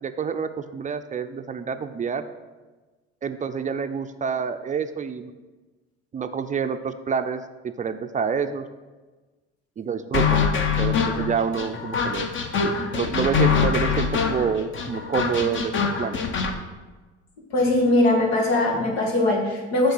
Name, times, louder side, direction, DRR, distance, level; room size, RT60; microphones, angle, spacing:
voice 1, 0.0-2.2 3.2-5.3 6.1-8.7 9.8-10.4 10.8-12.3 12.6-16.2, right 6 dB, 25° right, 9 dB, 0.4 m, -28 dB
sound 1, 10.1-16.5, left 5 dB, 40° left, 0.9 m, -24 dB
voice 2, 17.5-19.9, left 2 dB, 90° left, -1 dB, 1.7 m, -21 dB
7.6 x 3.3 x 6.1 m, 1.3 s
supercardioid pair, 80°, 30 cm